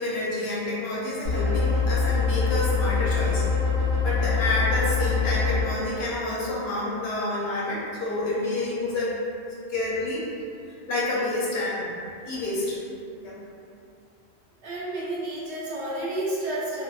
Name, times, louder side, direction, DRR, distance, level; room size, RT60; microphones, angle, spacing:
voice 1, 0.0-3.5 4.0-9.1 9.7-10.3 10.9-11.9 12.3-12.8 13.2-13.3, left 2 dB, 70° left, -6 dB, 0.8 m, -28 dB
sound 1, 1.2-5.6, left 5 dB, 40° right, 1.1 m, -24 dB
voice 2, 14.6-16.8, right 1 dB, 70° right, -7 dB, 0.9 m, -30 dB
2.7 x 2.0 x 2.2 m, 2.4 s
omnidirectional pair, 1.2 m